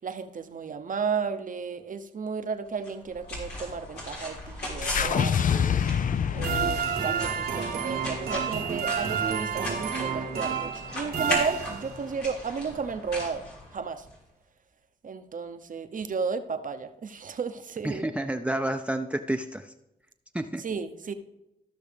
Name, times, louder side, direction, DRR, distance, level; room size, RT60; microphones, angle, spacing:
voice 1, 0.0-5.7 6.3-13.5 13.7-14.1 15.0-18.1 20.6-21.1, right 5 dB, 55° right, 9 dB, 0.8 m, -33 dB
sound 1, 2.8-14.2, left 1 dB, 90° left, 3.3 m, -38 dB
sound 2, 4.8-9.1, left 8 dB, 55° left, 0.4 m, -28 dB
sound 3, 6.4-12.2, right 6 dB, 75° right, 1.1 m, -30 dB
voice 2, 17.8-19.7 20.3-20.6, right 1 dB, 10° right, 7 dB, 0.6 m, -30 dB
14.0 x 6.1 x 3.4 m, 0.90 s
cardioid pair, 45°, 16 cm